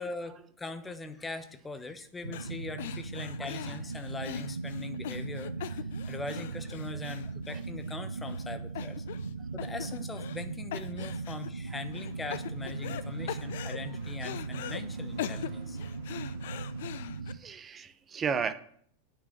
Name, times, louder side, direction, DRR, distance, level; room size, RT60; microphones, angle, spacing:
voice 1, 0.0-9.0 9.5-15.8, left 3 dB, 10° left, 9 dB, 1.0 m, -41 dB
sound 1, 2.2-17.4, right 3 dB, 80° right, 0.5 m, -38 dB
sound 2, 2.3-2.5 2.8-8.0 8.3-8.4 8.7-9.3 9.6-10.4 10.7-11.5 11.9-13.0 13.3-14.8 15.2-17.3, left 12 dB, 55° left, 0.6 m, -41 dB
sound 3, 11.6-16.8, right 3 dB, 50° right, 2.7 m, -58 dB
voice 2, 17.3-18.5, right 6 dB, 20° right, 12 dB, 0.8 m, -33 dB
8.9 x 6.1 x 7.5 m, 0.63 s
figure-of-eight pair, 90°, 0 cm